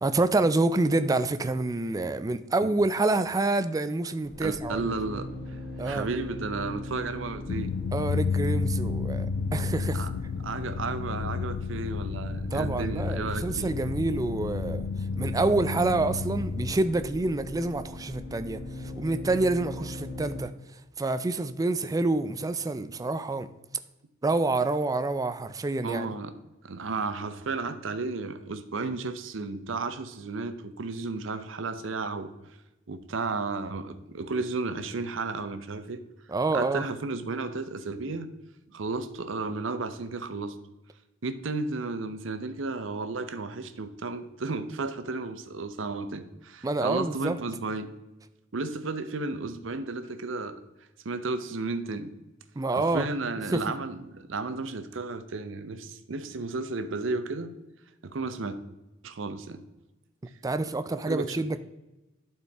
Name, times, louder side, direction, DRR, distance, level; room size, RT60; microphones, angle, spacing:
voice 1, 0.0-4.9 5.8-6.1 7.9-9.3 9.5-10.1 12.5-14.9 15.2-18.6 19.0-20.5 21.0-23.5 24.2-26.1 36.3-36.8 46.6-47.4 52.6-53.1 53.5-53.6 60.4-61.6, right 2 dB, 15° right, 0.3 m, -27 dB
sound 1, 4.2-20.4, left 1 dB, 50° left, 1.2 m, -41 dB
voice 2, 4.4-7.7 9.9-10.1 10.4-13.7 25.8-26.3 26.6-32.3 32.9-36.0 36.5-38.3 38.7-40.6 41.2-47.9 48.5-50.6 51.0-52.1 52.7-57.5 58.0-58.6 59.0-59.6 60.9-61.4, right 3 dB, 70° right, 0.7 m, -33 dB
sound 2, 7.5-16.7, left 4 dB, 75° left, 0.3 m, -31 dB
11.5 x 4.5 x 3.4 m
head